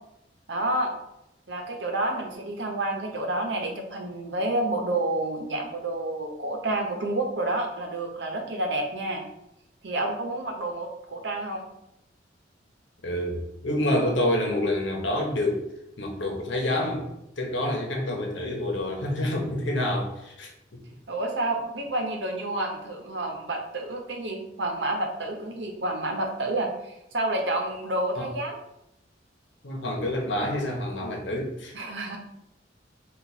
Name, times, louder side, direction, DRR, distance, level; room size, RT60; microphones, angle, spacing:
voice 1, 0.5-0.9 1.5-9.2 9.8-11.7 21.1-28.6 31.7-32.2, right 2 dB, 70° right, 2 dB, 0.9 m, -29 dB
voice 2, 13.0-15.6 16.0-17.0 17.4-20.8 28.2-28.3 29.6-31.7, left 1 dB, 85° left, 1 dB, 1.0 m, -28 dB
4.1 x 2.6 x 4.7 m, 0.85 s
head